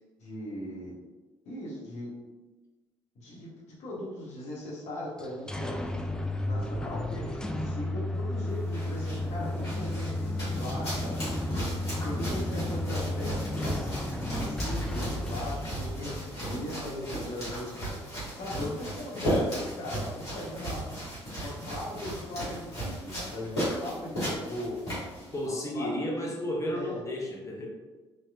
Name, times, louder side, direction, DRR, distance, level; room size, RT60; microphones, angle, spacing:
voice 1, 0.2-0.9 1.4-2.1 3.1-3.5 3.8-5.8 6.4-11.2 12.0-13.9 14.4-17.7 18.3-20.9 21.4-24.8 25.4-26.3 26.7-27.0, left 1 dB, 60° left, -5 dB, 1.0 m, -39 dB
sound 1, 5.2-16.8, left 1 dB, 5° left, 0.3 m, -33 dB
sound 2, 8.5-25.5, equal, 85° left, 1.1 m, -36 dB
voice 2, 19.2-19.5 21.4-21.5 25.3-27.7, left 1 dB, 20° left, -1 dB, 0.8 m, -33 dB
3.0 x 2.9 x 2.3 m, 1.2 s
figure-of-eight pair, 45°, 13 cm